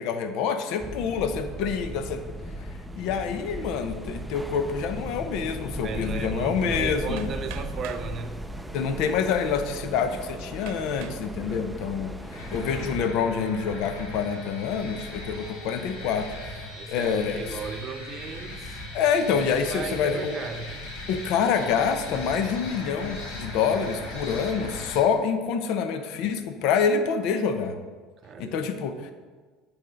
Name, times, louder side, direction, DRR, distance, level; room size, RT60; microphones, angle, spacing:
voice 1, 0.0-2.2 2.9-7.3 8.7-12.1 12.5-17.4 18.9-20.4 21.1-27.8 28.4-29.1, left 6 dB, 65° left, 8 dB, 0.7 m, -27 dB
sound 1, 0.8-13.0, right 1 dB, 5° right, 0.5 m, -37 dB
voice 2, 5.8-8.4 11.4-11.7 16.7-18.9 19.5-20.7 28.2-28.7, right 5 dB, 40° right, 8 dB, 0.8 m, -36 dB
Hammer, 7.2-8.1 9.0-9.1 9.7-9.8 10.7-11.3 11.8-12.3, right 9 dB, 75° right, 0.8 m, -44 dB
sound 2, 12.3-25.0, left 2 dB, 85° left, 2.1 m, -38 dB
9.0 x 4.3 x 6.3 m, 1.4 s
cardioid pair, 125°, 0 cm